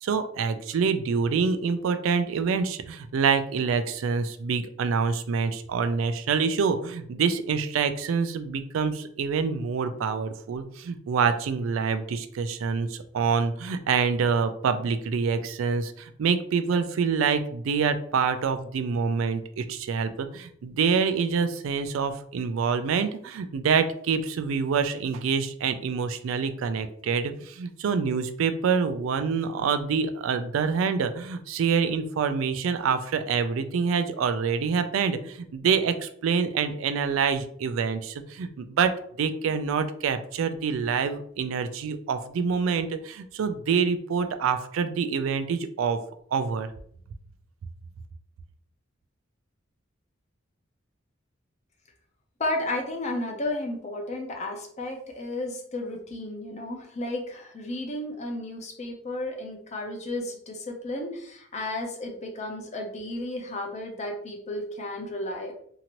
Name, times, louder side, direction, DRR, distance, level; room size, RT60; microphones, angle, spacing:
voice 1, 0.0-38.9 39.2-46.0 46.3-46.7, right 5 dB, 75° right, 10 dB, 0.3 m, -26 dB
voice 2, 52.4-65.5, left 1 dB, 35° left, 2 dB, 0.6 m, -33 dB
2.8 x 2.5 x 2.9 m, 0.63 s
head